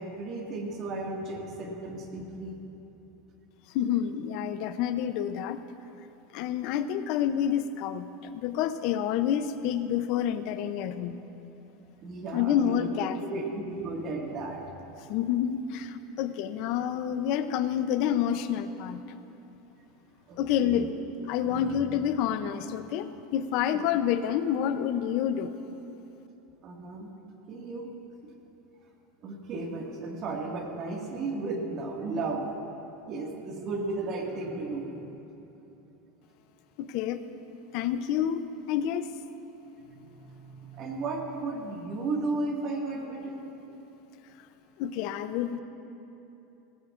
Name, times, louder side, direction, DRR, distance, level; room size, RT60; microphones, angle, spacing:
voice 1, 0.0-2.6 12.0-12.9 13.2-14.8 20.3-20.9 21.4-21.8 26.6-27.1 27.5-27.9 29.2-32.5 33.1-35.1 39.9-43.5, right 3 dB, 35° right, 0 dB, 1.9 m, -34 dB
voice 2, 3.7-5.6 6.3-11.2 12.3-13.2 15.1-19.2 20.4-20.9 21.3-25.5 36.8-37.2 37.7-39.1 44.8-45.6, left 9 dB, 50° left, 11 dB, 0.6 m, -28 dB
18.0 x 16.5 x 2.5 m, 3.0 s
supercardioid pair, 155°, 0 cm